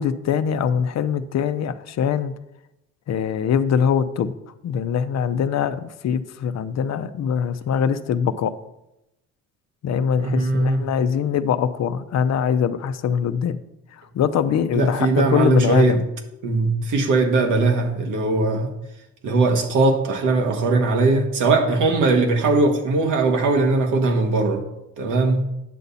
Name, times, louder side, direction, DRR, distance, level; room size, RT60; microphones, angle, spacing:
voice 1, 0.0-2.3 3.1-4.3 4.6-8.5 9.8-13.6 14.1-16.0, left 7 dB, 60° left, 11 dB, 0.7 m, -22 dB
voice 2, 10.2-10.9 14.7-16.0 16.4-18.7 19.2-24.7 25.0-25.5, right 3 dB, 85° right, 3 dB, 1.5 m, -20 dB
9.3 x 6.9 x 4.1 m, 0.88 s
cardioid pair, 90°, 30 cm